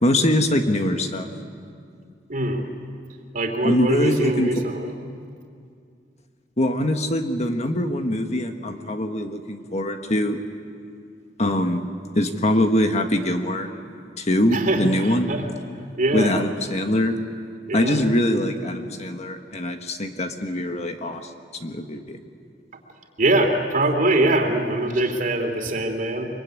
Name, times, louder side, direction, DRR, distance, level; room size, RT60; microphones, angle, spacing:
voice 1, 0.0-1.3 3.6-4.5 6.6-10.4 11.4-11.9 12.1-13.7 14.2-15.3 16.1-17.1 17.7-21.2 21.6-22.2, left 1 dB, 35° left, 6 dB, 1.5 m, -23 dB
voice 2, 2.3-2.6 3.3-4.9 14.5-15.5 16.0-16.3 17.7-18.0 23.2-26.3, right 1 dB, 45° right, 4 dB, 3.1 m, -23 dB
24.5 x 24.0 x 9.8 m, 2.3 s
head